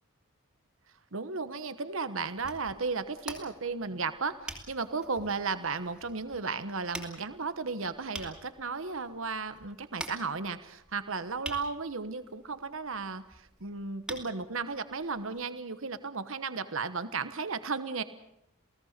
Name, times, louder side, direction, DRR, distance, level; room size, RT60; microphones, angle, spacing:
voice 1, 1.1-18.0, right 4 dB, 70° right, 11 dB, 1.2 m, -34 dB
sound 1, 2.3-15.5, right 1 dB, 5° right, 3.0 m, -47 dB
28.5 x 17.5 x 6.7 m, 0.79 s
head